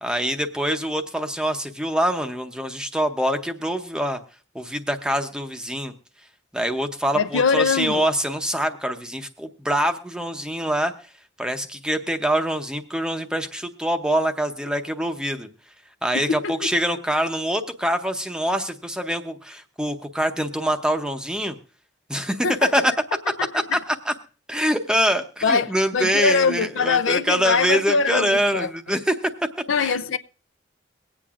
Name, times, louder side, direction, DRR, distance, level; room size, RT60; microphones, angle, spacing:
voice 1, 0.0-4.2 4.5-5.9 6.5-10.9 11.4-15.5 16.0-21.6 22.1-22.5 22.7-22.9 23.5-24.1 24.5-29.2 29.8-30.0, equal, 5° right, 0.7 m, -24 dB
voice 2, 7.1-8.0 16.1-16.7 22.4-22.7 23.4-23.8 25.4-28.7 29.7-30.2, left 5 dB, 85° left, 0.5 m, -23 dB
23.5 x 8.6 x 2.4 m
head